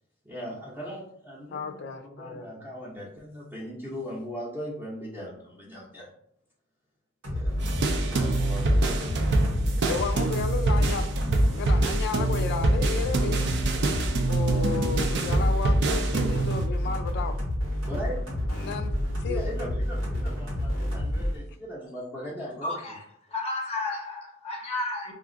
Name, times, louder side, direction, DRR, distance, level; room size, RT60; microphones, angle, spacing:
voice 1, 0.2-6.1 7.3-7.6 7.8-9.3 17.9-18.2 18.6-18.7 19.2-23.0, equal, 10° right, 0.7 m, -39 dB
voice 2, 1.5-2.4 9.9-11.0 11.5-13.5 14.2-17.4 18.5-18.9 19.2-19.4, left 5 dB, 55° left, 0.3 m, -33 dB
sound 1, 7.2-21.4, equal, 75° right, 1.2 m, -29 dB
sound 2, 7.6-16.7, right 2 dB, 60° right, 0.4 m, -26 dB
voice 3, 22.6-23.0 23.3-25.1, left 2 dB, 30° left, 0.7 m, -32 dB
2.4 x 2.4 x 3.7 m
head